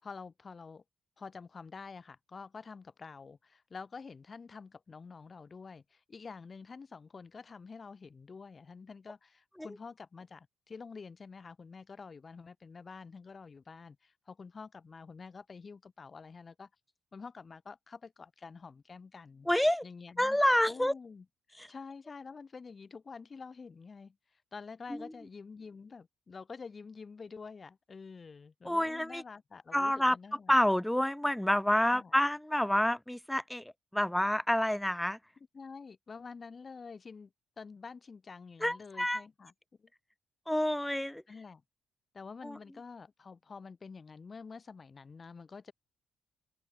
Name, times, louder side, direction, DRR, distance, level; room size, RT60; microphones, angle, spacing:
voice 1, 0.0-0.8 1.2-16.7 17.1-19.5 19.8-20.4 20.7-24.2 24.5-30.5 31.9-32.1 35.5-37.3 37.6-39.5 39.8-39.9 41.3-41.6 42.1-45.7, left 5 dB, 35° left, 5.2 m, -48 dB
voice 2, 19.5-19.8 20.2-20.9 21.6-21.7 24.9-25.1 28.6-29.2 29.7-30.2 30.5-35.2 38.6-39.2 40.5-41.2 42.4-42.6, left 1 dB, 5° left, 0.3 m, -28 dB
open air
cardioid pair, 90°, 0 cm